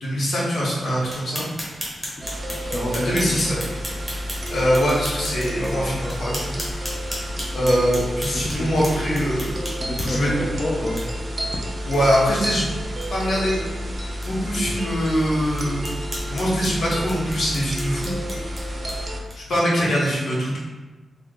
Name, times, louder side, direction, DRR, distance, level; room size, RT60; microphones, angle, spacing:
voice 1, 0.0-1.4 2.9-3.6 4.5-6.6 7.5-9.7 10.0-10.4 11.9-12.7 13.1-13.5 14.2-15.8 16.3-18.1 19.3-20.6, equal, 70° left, -6 dB, 1.0 m, -23 dB
sound 1, 1.0-10.3 11.0-11.1 11.4-11.5 11.9-12.0 12.4-12.5 12.9-13.1 13.6-13.7 14.2-14.3 14.8-14.9 15.6-19.6, equal, 5° left, 0.9 m, -36 dB
voice 2, 2.2-3.5 7.3-7.8 8.4-8.7 9.8-11.0, left 1 dB, 35° left, -4 dB, 0.4 m, -30 dB
sound 2, 2.2-19.2, equal, 30° right, 0.6 m, -30 dB
3.3 x 2.1 x 3.6 m, 1.2 s
wide cardioid pair, 110°, 0 cm